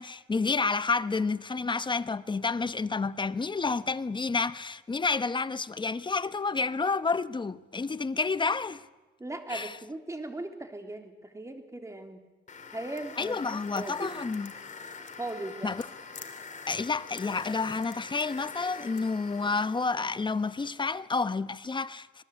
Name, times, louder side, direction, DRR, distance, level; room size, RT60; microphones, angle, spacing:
voice 1, 0.0-8.8 9.5-9.8 13.2-14.5 15.6-15.8 16.7-22.2, left 4 dB, 25° left, 1.0 m, -30 dB
voice 2, 9.2-12.2 12.7-14.2 15.2-15.8, right 2 dB, 15° right, 3.5 m, -38 dB
sound 1, 12.5-20.7, left 5 dB, 40° left, 3.3 m, -45 dB
26.5 x 19.5 x 8.4 m
cardioid pair, 90°, 20 cm